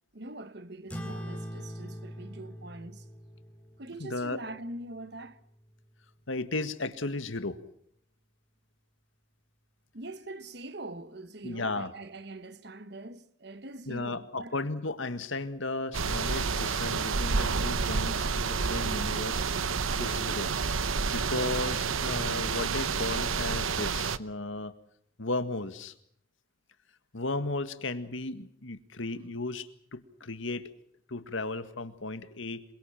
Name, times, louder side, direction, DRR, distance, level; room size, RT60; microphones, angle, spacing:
voice 1, 0.1-3.1 3.8-5.4 9.9-14.6, right 2 dB, 55° right, 1.3 m, -43 dB
sound 1, 0.9-5.7, equal, 5° left, 3.7 m, -43 dB
voice 2, 4.0-4.4 6.3-7.6 11.4-11.9 13.9-19.4 20.0-20.5 21.1-24.7 25.2-25.9 27.1-30.7 31.1-32.6, left 2 dB, 75° left, 1.9 m, -35 dB
sound 2, 15.9-24.2, right 5 dB, 90° right, 1.0 m, -29 dB
27.5 x 23.5 x 5.9 m
head